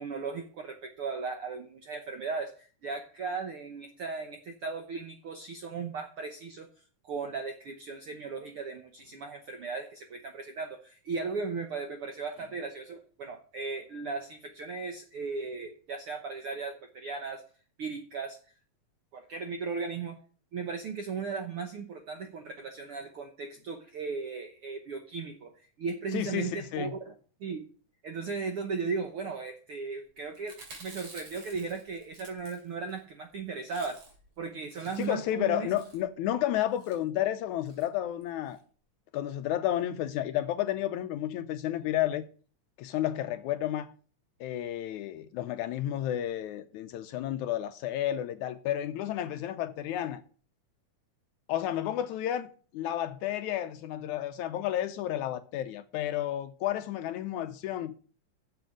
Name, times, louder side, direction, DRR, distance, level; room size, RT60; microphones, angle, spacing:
voice 1, 0.0-17.4 17.8-18.4 19.1-20.2 20.5-27.1 27.4-27.6 28.0-34.0 34.4-35.7, right 4 dB, 70° right, 1.3 m, -37 dB
voice 2, 26.1-26.9 35.0-38.6 39.1-42.2 42.8-43.9 44.4-50.2 51.5-57.9, left 12 dB, 75° left, 1.9 m, -31 dB
Chewing mastication, 30.3-33.0 33.3-33.4 33.6-34.3 34.6-35.3 35.7-36.1 36.7-37.0 37.7-37.9 38.2-38.3 38.5-38.6, right 3 dB, 45° right, 3.3 m, -50 dB
7.9 x 7.3 x 7.6 m
omnidirectional pair, 3.8 m